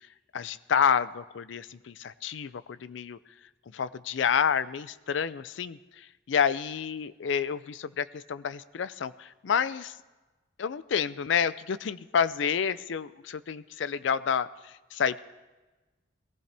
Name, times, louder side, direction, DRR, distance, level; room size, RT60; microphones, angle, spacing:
voice 1, 0.3-3.2 3.7-9.9 10.6-15.2, left 7 dB, 75° left, 15 dB, 0.4 m, -29 dB
19.5 x 15.0 x 3.4 m, 1.2 s
head